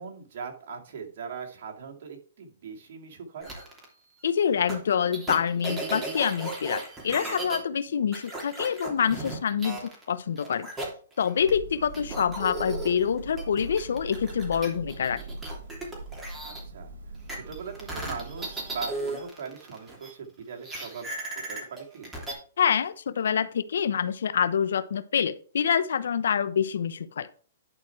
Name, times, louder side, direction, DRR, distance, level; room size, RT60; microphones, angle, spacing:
voice 1, 0.0-3.5 12.0-12.3 16.4-17.0 17.3-21.1 21.5-22.1, right 5 dB, 60° right, 2 dB, 2.4 m, -40 dB
sound 1, 3.4-3.8 4.7-4.8 5.1-7.6 8.1-10.1 10.4-11.5 11.9-16.6 17.3-20.1 20.6-22.3, right 2 dB, 10° right, 2.9 m, -36 dB
voice 2, 4.2-10.7 11.2-15.2 22.6-27.3, left 7 dB, 75° left, 14 dB, 0.7 m, -26 dB
Thunder, 11.4-19.2, right 2 dB, 85° right, 1.8 m, -41 dB
11.0 x 4.5 x 4.6 m, 0.42 s
hypercardioid pair, 140°, 0 cm